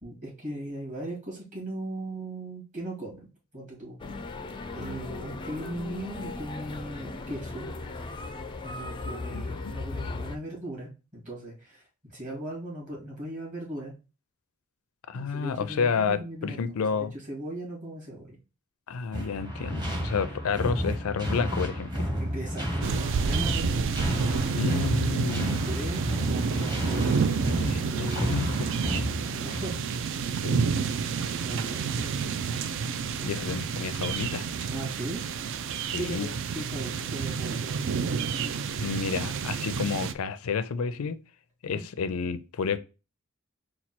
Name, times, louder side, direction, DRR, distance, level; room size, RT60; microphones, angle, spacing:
voice 1, 0.0-4.0 4.2-4.3 4.7-7.7 8.6-13.9 15.1-16.6 16.9-18.4 22.2-24.1 25.7-27.2 27.8-28.5 29.2-29.7 31.4-32.2 33.2-33.6 34.7-35.3 36.0-38.1 41.7-41.8, right 1 dB, 35° right, 2.3 m, -38 dB
sound 1, 4.0-10.4, left 3 dB, 25° left, 0.3 m, -37 dB
voice 2, 15.1-17.1 18.9-22.1 24.6-25.7 27.7-28.5 30.4-30.6 33.3-34.4 35.9-36.3 38.8-41.2 41.6-42.8, left 5 dB, 85° left, 0.4 m, -30 dB
sound 2, 19.1-29.9, equal, 20° right, 1.1 m, -31 dB
sound 3, 22.8-40.1, right 5 dB, 60° right, 0.4 m, -29 dB
4.3 x 2.3 x 4.3 m
head